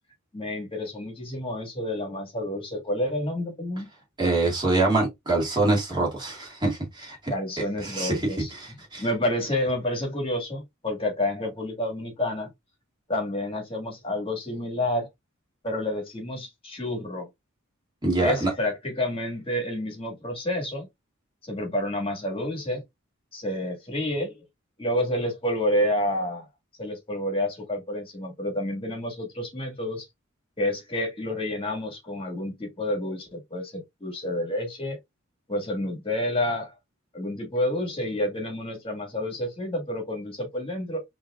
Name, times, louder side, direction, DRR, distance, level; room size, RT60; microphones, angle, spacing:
voice 1, 0.3-3.9 7.3-8.5 9.0-12.5 13.1-15.1 15.6-17.3 18.2-20.9 21.4-22.8 23.3-24.4 24.8-26.4 26.8-30.0 30.6-35.0 35.5-36.7 37.1-41.0, left 1 dB, 25° left, 1.6 m, -29 dB
voice 2, 4.2-9.1 18.0-18.5, right 2 dB, 20° right, 2.0 m, -25 dB
5.4 x 3.1 x 2.2 m
head